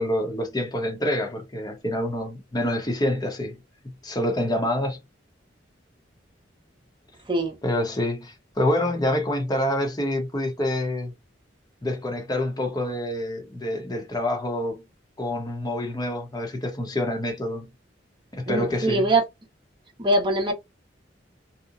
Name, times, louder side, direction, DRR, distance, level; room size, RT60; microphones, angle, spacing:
voice 1, 0.0-3.6 4.0-5.0 7.6-11.1 11.8-14.8 15.2-17.7 18.3-19.0, left 1 dB, 20° left, 0.8 m, -27 dB
voice 2, 18.5-19.2 20.0-20.5, right 2 dB, 25° right, 0.8 m, -22 dB
2.8 x 2.1 x 2.4 m
head